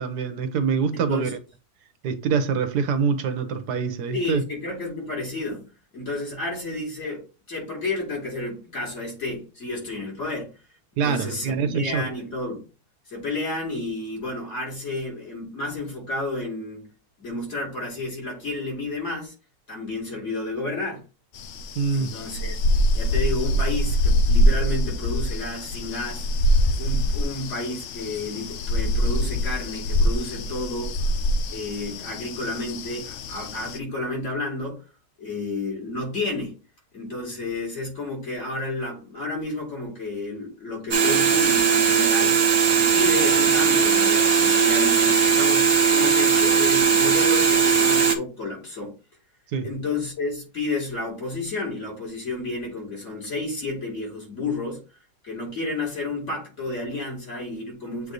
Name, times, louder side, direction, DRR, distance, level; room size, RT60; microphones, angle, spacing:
voice 1, 0.0-1.4 2.0-4.4 11.0-12.1 21.8-22.2 49.5-49.7, right 6 dB, 85° right, 1.4 m, -25 dB
voice 2, 0.9-1.3 4.1-5.6 5.9-7.2 7.5-10.5 11.0-12.6 13.1-16.9 17.2-19.3 19.7-21.0 21.9-22.6 22.9-30.9 31.5-34.8 35.2-36.6 36.9-42.4 42.8-48.9 49.6-54.8 55.2-58.1, left 2 dB, 45° left, 3.1 m, -31 dB
sound 1, 21.3-33.8, equal, 65° left, 0.7 m, -24 dB
sound 2, 40.9-48.2, right 6 dB, 45° right, 0.9 m, -19 dB
7.9 x 3.2 x 3.9 m
omnidirectional pair, 1.7 m